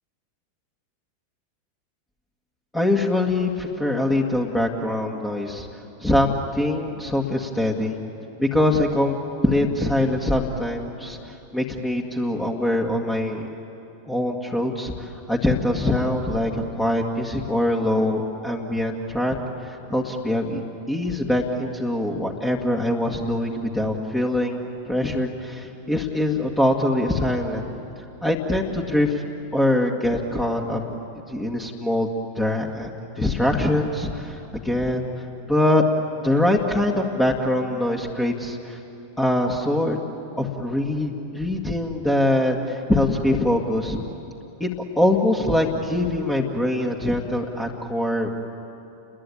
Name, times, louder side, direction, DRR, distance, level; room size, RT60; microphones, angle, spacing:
voice 1, 2.7-7.9 8.4-9.2 9.4-13.4 14.1-19.4 19.6-20.6 20.9-24.6 24.9-27.6 28.2-29.2 29.5-30.8 31.3-32.1 32.4-35.1 35.5-35.8 36.2-38.8 39.2-40.0 40.4-44.0 44.6-44.7 45.0-48.3, left 1 dB, 10° left, 0 dB, 2.0 m, -23 dB
30.0 x 21.0 x 8.8 m, 2.8 s
figure-of-eight pair, 90°, 0 cm